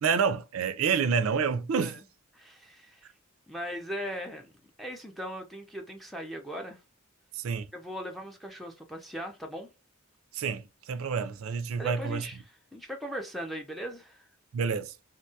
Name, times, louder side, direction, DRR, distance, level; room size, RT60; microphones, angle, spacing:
voice 1, 0.0-1.9 7.3-7.7 10.3-12.3 14.5-14.9, right 6 dB, 75° right, 0.4 m, -28 dB
voice 2, 2.3-3.1 3.5-4.5 4.8-6.8 7.7-9.7 11.8-12.4 12.7-14.2, equal, ahead, 0.5 m, -39 dB
3.6 x 2.2 x 2.6 m
head